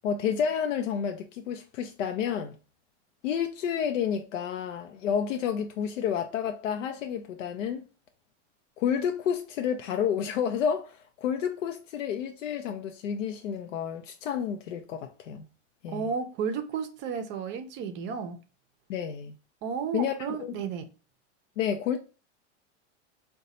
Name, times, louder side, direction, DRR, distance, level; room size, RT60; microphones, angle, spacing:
voice 1, 0.0-2.6 3.2-7.9 8.8-15.5 15.8-16.1 18.9-19.3 19.9-20.6 21.6-22.0, left 8 dB, 85° left, 0.6 m, -30 dB
voice 2, 15.9-18.4 19.6-20.9, right 6 dB, 30° right, 0.5 m, -33 dB
3.9 x 2.2 x 4.1 m
supercardioid pair, 135°, 37 cm